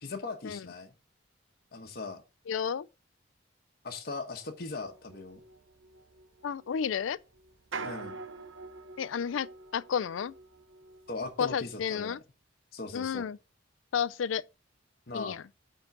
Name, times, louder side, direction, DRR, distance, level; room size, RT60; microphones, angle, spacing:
voice 1, 0.0-0.9 1.7-2.2 3.8-5.4 7.8-8.2 11.1-12.2 12.7-13.3 15.1-15.4, left 3 dB, 50° left, 1.2 m, -39 dB
voice 2, 2.5-2.9 6.4-7.2 9.0-10.3 11.4-12.2 12.9-13.4 13.9-14.4 15.1-15.4, left 7 dB, 85° left, 0.4 m, -31 dB
sound 1, 4.8-11.7, right 4 dB, 80° right, 0.7 m, -46 dB
8.9 x 3.9 x 5.8 m
head